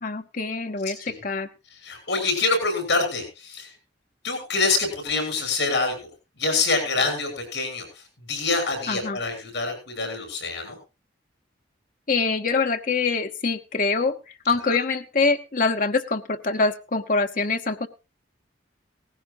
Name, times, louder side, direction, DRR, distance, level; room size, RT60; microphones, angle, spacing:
voice 1, 0.0-1.5 8.9-9.2 12.1-17.9, left 4 dB, 45° left, 6 dB, 1.0 m, -25 dB
voice 2, 1.8-3.7 4.2-6.0 6.4-7.9 8.3-10.8, left 3 dB, 65° left, 4 dB, 7.3 m, -25 dB
18.0 x 16.0 x 2.6 m, 0.30 s
head